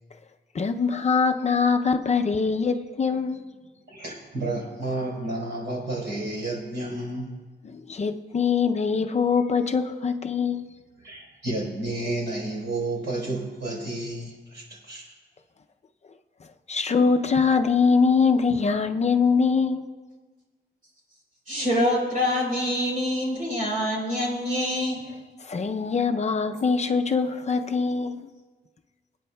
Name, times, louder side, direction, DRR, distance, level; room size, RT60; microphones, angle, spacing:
voice 1, 0.5-3.4 7.6-10.6 16.7-19.8 25.4-28.3, left 5 dB, 40° left, 6 dB, 0.5 m, -23 dB
voice 2, 3.9-7.3 11.0-15.1, right 2 dB, 80° right, -3 dB, 4.0 m, -31 dB
voice 3, 21.5-25.0, left 1 dB, 50° right, -1 dB, 3.5 m, -25 dB
27.0 x 9.1 x 2.2 m, 1.4 s
wide cardioid pair, 175°, 18 cm